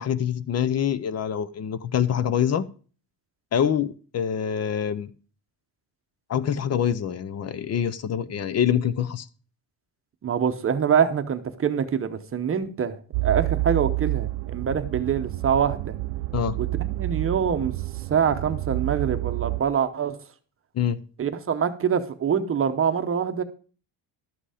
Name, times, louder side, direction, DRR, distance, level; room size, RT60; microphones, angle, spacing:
voice 1, 0.0-2.7 3.5-5.1 6.3-9.3 16.3-16.6 20.7-21.0, left 9 dB, 35° left, 0.6 m, -25 dB
voice 2, 10.2-13.0 13.2-15.9 16.6-17.7 18.1-20.2 21.2-23.4, right 7 dB, 30° right, 0.8 m, -25 dB
sound 1, 13.1-19.6, right 21 dB, 90° right, 0.7 m, -29 dB
12.5 x 8.0 x 5.0 m
cardioid pair, 165°, 46 cm